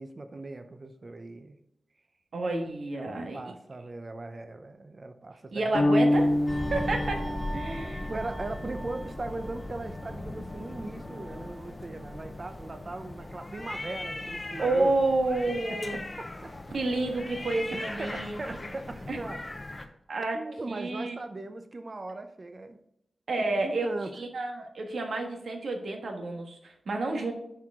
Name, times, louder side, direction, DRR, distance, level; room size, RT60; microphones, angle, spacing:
voice 1, 0.0-1.6 2.9-5.7 8.1-14.9 15.9-16.5 17.7-19.9 20.3-22.8 23.5-24.1, right 2 dB, 35° right, 8 dB, 0.7 m, -39 dB
voice 2, 2.3-3.4 5.5-6.3 6.7-8.1 14.6-16.0 16.7-18.7 19.1-19.2 20.1-20.4 20.7-21.1 23.3-23.9 24.2-27.3, right 2 dB, 75° right, 3 dB, 1.4 m, -30 dB
sound 1, 5.7-8.1, left 1 dB, 65° left, 1.2 m, -26 dB
sound 2, 6.1-19.9, left 2 dB, 25° left, 0.7 m, -41 dB
sound 3, 6.5-15.5 15.9-16.1, equal, 5° left, 1.1 m, -39 dB
10.0 x 4.7 x 3.6 m, 0.81 s
wide cardioid pair, 130°, 0 cm